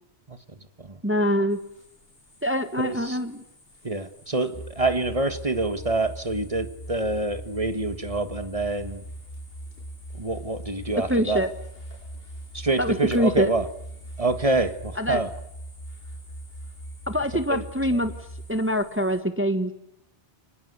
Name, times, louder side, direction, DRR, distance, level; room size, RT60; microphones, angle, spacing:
voice 1, 1.0-1.6 2.4-3.4 11.1-11.5 12.8-13.5 15.0-15.2 17.1-18.1 18.5-19.7, equal, 10° right, 9 dB, 1.3 m, -24 dB
sound 1, 1.5-19.2, left 2 dB, 60° left, 6.0 m, -54 dB
voice 2, 2.8-3.2 3.8-9.0 10.1-11.5 12.5-13.7 14.2-15.3 17.5-17.6 17.9-18.1, right 2 dB, 30° right, 10 dB, 1.7 m, -26 dB
sound 2, 4.5-18.5, right 1 dB, 30° left, 2.8 m, -40 dB
30.0 x 24.0 x 8.1 m, 0.81 s
omnidirectional pair, 1.1 m